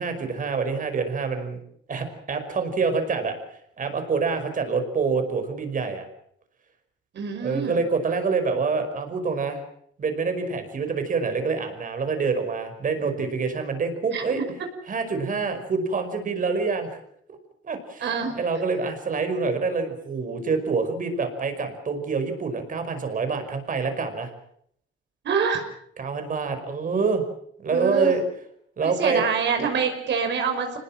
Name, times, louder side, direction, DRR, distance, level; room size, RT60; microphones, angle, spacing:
voice 1, 0.0-1.6 1.9-3.4 3.8-6.1 7.4-9.6 10.0-14.4 14.9-17.0 17.6-18.1 18.4-24.3 26.0-27.2 27.6-28.2 28.8-29.2 29.6-29.7, right 4 dB, 40° right, 7 dB, 5.4 m, -26 dB
voice 2, 7.1-7.8 13.0-13.1 14.1-14.2 18.0-18.4 25.2-25.7 27.7-28.1 28.8-30.8, right 6 dB, 60° right, 5 dB, 5.4 m, -26 dB
26.0 x 20.0 x 7.5 m, 0.68 s
cardioid pair, 115°, 21 cm